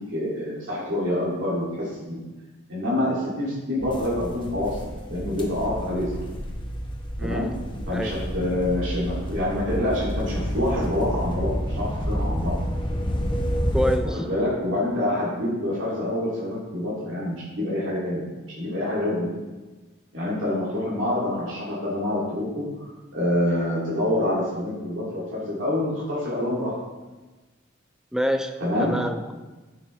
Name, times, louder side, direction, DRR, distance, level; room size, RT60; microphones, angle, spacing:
voice 1, 0.1-2.2 2.7-4.8 5.1-6.2 7.2-7.5 7.9-12.6 14.1-19.3 20.1-26.8 28.6-28.9, left 1 dB, 65° right, -7 dB, 2.4 m, -26 dB
sound 1, 3.8-14.0, equal, 25° left, 0.8 m, -29 dB
voice 2, 7.2-7.5 7.9-8.1 13.7-14.2 28.1-29.3, equal, 5° right, 6 dB, 0.3 m, -27 dB
9.3 x 6.5 x 3.2 m, 1.2 s
head